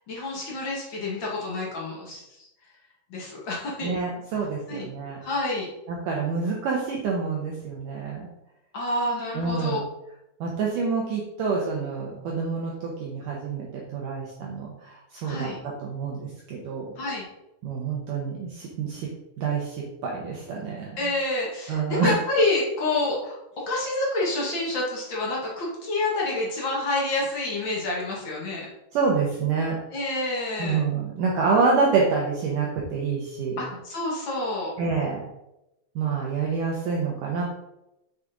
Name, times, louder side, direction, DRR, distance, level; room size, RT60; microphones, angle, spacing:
voice 1, 0.1-2.5 3.1-4.0 4.7-4.9 5.2-5.7 8.7-9.8 15.2-15.6 17.0-17.2 21.0-23.3 23.7-28.7 29.9-30.8 33.6-34.7, left 2 dB, 50° left, -3 dB, 1.5 m, -28 dB
voice 2, 3.8-5.2 5.9-8.3 9.4-9.8 10.4-15.5 15.8-16.9 17.6-19.1 19.4-20.9 21.7-22.2 28.9-29.8 30.6-33.6 34.8-35.2 36.0-37.4, right 5 dB, 70° right, -2 dB, 2.2 m, -27 dB
7.5 x 6.5 x 3.8 m, 0.88 s
omnidirectional pair, 4.7 m